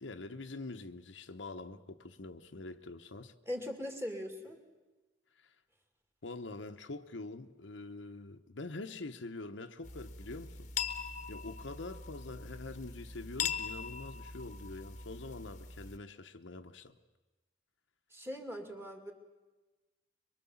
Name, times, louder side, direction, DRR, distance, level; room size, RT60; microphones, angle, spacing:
voice 1, 0.0-3.3 5.4-5.5 6.2-10.7 11.3-16.9, left 2 dB, 80° left, 1.0 m, -45 dB
voice 2, 3.5-4.6 18.1-19.1, equal, 15° right, 2.5 m, -40 dB
sound 1, 9.8-16.0, left 6 dB, 40° left, 1.2 m, -41 dB
24.0 x 23.5 x 7.2 m
head